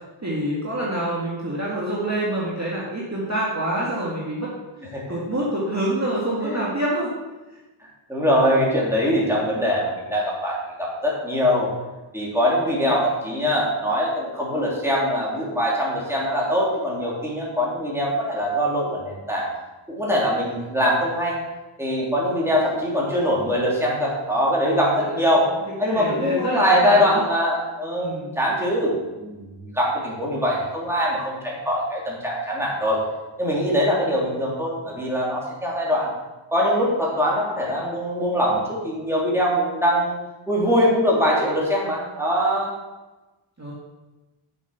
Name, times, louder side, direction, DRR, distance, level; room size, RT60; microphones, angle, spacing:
voice 1, 0.2-4.5 5.1-7.1 7.5-7.6 22.2-22.5 24.7-25.0 25.8-27.2 28.0-28.3 43.6-43.7, right 1 dB, 35° right, -6 dB, 2.0 m, -26 dB
voice 2, 8.1-11.7 12.1-19.5 19.9-21.4 21.8-25.5 25.8-33.0 33.4-36.1 36.5-40.2 40.5-42.7, equal, 5° right, -5 dB, 3.3 m, -22 dB
8.3 x 6.8 x 5.9 m, 1.1 s
wide cardioid pair, 75°, 49 cm